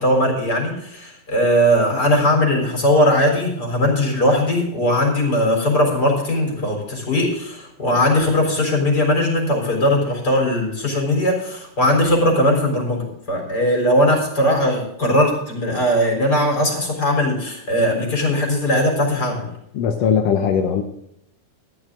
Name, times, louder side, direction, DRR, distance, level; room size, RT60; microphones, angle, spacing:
voice 1, 0.0-19.5, left 1 dB, 25° left, 1 dB, 4.4 m, -19 dB
voice 2, 19.7-20.8, left 7 dB, 75° left, 5 dB, 1.6 m, -19 dB
13.5 x 12.0 x 3.8 m, 0.77 s
omnidirectional pair, 4.0 m